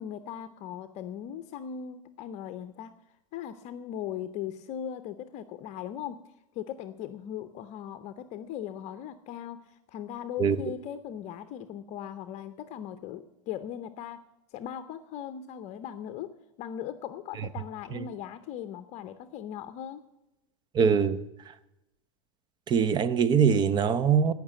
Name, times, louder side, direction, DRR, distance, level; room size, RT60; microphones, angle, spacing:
voice 1, 0.0-2.9 3.3-6.2 6.5-14.2 14.5-16.3 16.6-20.0, left 9 dB, 40° left, 0.7 m, -39 dB
voice 2, 20.7-21.2 22.7-24.3, right 6 dB, 25° right, 0.7 m, -23 dB
16.0 x 5.9 x 7.5 m
hypercardioid pair, 120°, 17 cm